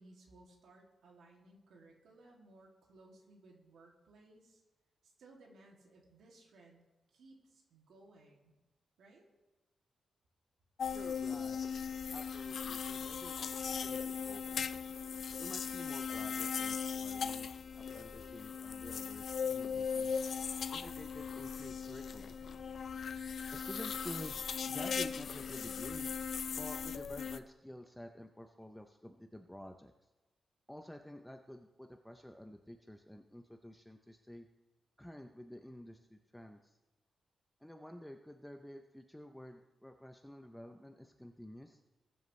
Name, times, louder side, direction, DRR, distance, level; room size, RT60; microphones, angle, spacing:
voice 1, 0.0-4.6 5.2-6.8 7.1-8.5 9.0-9.2, right 2 dB, 85° right, -1 dB, 2.4 m, -60 dB
sound 1, 10.8-27.4, left 6 dB, 60° left, 0.4 m, -38 dB
voice 2, 10.9-11.6 12.1-14.7 15.4-17.5 17.8-20.2 20.7-22.4 23.5-26.1 26.5-29.9 30.7-34.5 35.0-36.8 37.6-41.8, left 1 dB, 5° left, 5 dB, 0.6 m, -50 dB
20.5 x 7.9 x 3.2 m, 1.1 s
wide cardioid pair, 140°, 0 cm